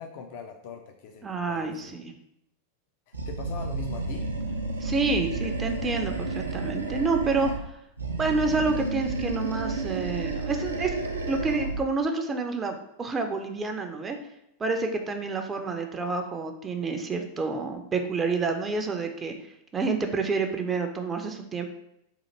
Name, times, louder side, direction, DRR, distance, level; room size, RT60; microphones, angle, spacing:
voice 1, 0.0-1.9 3.1-4.3, left 5 dB, 50° left, 3 dB, 0.4 m, -41 dB
voice 2, 1.2-2.1 4.8-7.5 8.2-10.9 11.3-14.2 14.6-19.3 19.7-21.7, right 3 dB, 20° right, 4 dB, 0.4 m, -28 dB
Animal, 3.1-7.7 8.0-11.9, right 3 dB, 75° right, 0.4 m, -31 dB
2.8 x 2.5 x 4.2 m, 0.82 s
figure-of-eight pair, 90°, 0 cm